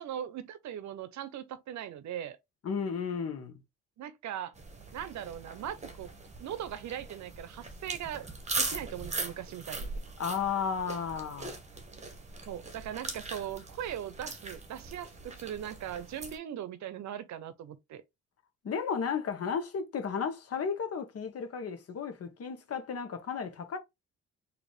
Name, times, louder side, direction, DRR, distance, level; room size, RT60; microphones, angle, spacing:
voice 1, 0.0-2.4 4.0-4.5 4.9-6.1 6.4-9.9 12.5-18.0, right 10 dB, 70° right, 0.7 m, -39 dB
voice 2, 2.6-3.5 10.2-11.6 18.6-23.8, left 6 dB, 50° left, 1.2 m, -33 dB
sound 1, 4.5-16.4, right 3 dB, 25° right, 1.1 m, -40 dB
4.0 x 2.8 x 3.2 m
cardioid pair, 90°, 30 cm